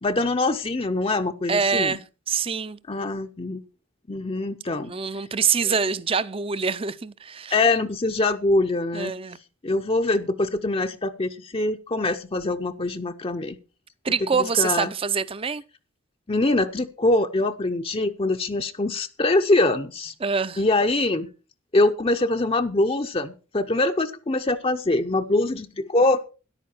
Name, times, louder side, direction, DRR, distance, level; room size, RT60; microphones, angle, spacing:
voice 1, 0.0-2.0 2.9-3.6 4.1-4.9 5.6-5.7 7.5-9.1 9.6-13.6 14.3-14.9 16.3-20.1 20.6-21.3 21.7-26.2, left 2 dB, 25° left, 0.6 m, -23 dB
voice 2, 1.5-2.8 4.8-7.6 8.9-9.4 14.0-15.6 20.2-20.6, right 6 dB, 25° right, 0.5 m, -25 dB
13.5 x 11.0 x 4.4 m
head